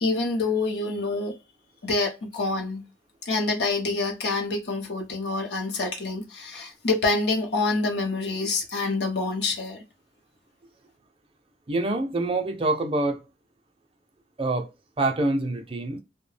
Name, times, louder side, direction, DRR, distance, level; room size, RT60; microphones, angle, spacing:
voice 1, 0.0-1.4 1.8-2.8 3.2-9.8, left 3 dB, 70° left, 0.6 m, -26 dB
voice 2, 11.7-13.2 14.4-14.7 15.0-16.0, right 2 dB, 30° right, 0.5 m, -25 dB
2.3 x 2.1 x 3.2 m
head